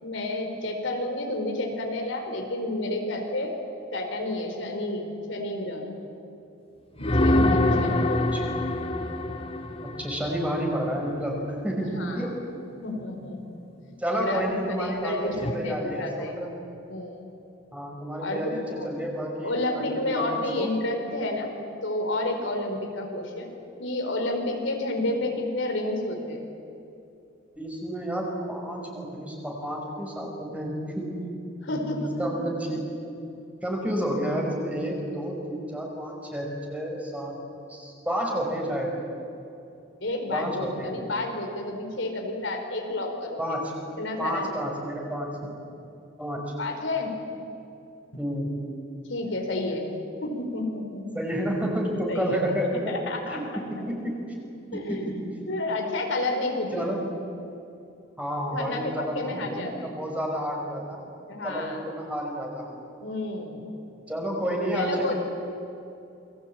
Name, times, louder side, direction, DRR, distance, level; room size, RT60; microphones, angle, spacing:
voice 1, 0.0-3.5 3.9-5.9 7.0-8.3 11.8-12.3 12.8-13.6 13.9-14.4 14.8-16.3 16.9-17.2 18.2-18.9 19.4-21.5 21.8-23.5 23.8-26.4 31.6-32.3 40.0-43.6 44.0-44.5 46.6-47.1 49.1-49.9 50.2-51.2 52.1-52.4 52.9-53.8 54.7-55.1 55.5-56.9 58.5-59.9 61.3-61.8 63.0-63.6 64.7-65.1, left 2 dB, 70° left, 2 dB, 4.4 m, -30 dB
sound 1, 7.0-10.8 15.3-15.5, left 1 dB, 30° left, 1.8 m, -25 dB
voice 2, 8.0-8.4 9.8-12.4 14.0-16.5 17.7-20.7 27.6-31.1 31.7-32.9 33.6-37.4 37.7-38.9 40.3-41.0 43.4-43.7 44.2-45.4 46.2-46.5 48.2-48.5 51.1-52.9 53.3-53.4 53.9-54.2 54.7-55.2 56.7-57.2 58.2-61.1 61.4-62.7 64.1-65.1, equal, 5° right, 0 dB, 5.5 m, -30 dB
29.0 x 22.0 x 8.8 m, 2.7 s
head